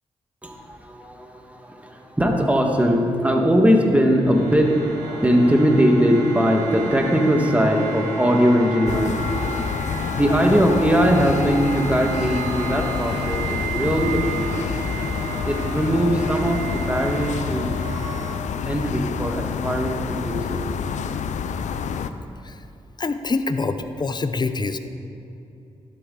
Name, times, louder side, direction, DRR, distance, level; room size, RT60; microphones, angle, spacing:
voice 1, 0.4-9.3 10.2-14.7 15.4-17.7 18.6-20.7, equal, 10° right, 2 dB, 1.5 m, -20 dB
sound 1, 3.8-18.3, right 4 dB, 85° right, 2.2 m, -33 dB
sound 2, 8.9-22.1, left 6 dB, 70° left, 0.4 m, -28 dB
voice 2, 23.0-24.8, left 3 dB, 35° left, 10 dB, 0.7 m, -25 dB
12.0 x 7.9 x 3.8 m, 2.7 s
supercardioid pair, 50°, 13 cm